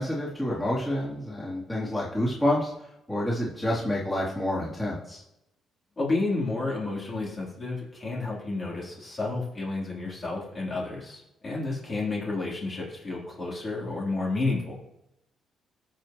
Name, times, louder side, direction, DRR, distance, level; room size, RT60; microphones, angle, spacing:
voice 1, 0.0-2.7 3.1-5.2, left 1 dB, 10° left, -7 dB, 3.2 m, -28 dB
voice 2, 6.0-14.8, left 3 dB, 35° left, -4 dB, 3.5 m, -31 dB
16.5 x 5.9 x 3.1 m, 0.86 s
cardioid pair, 90°, 0 cm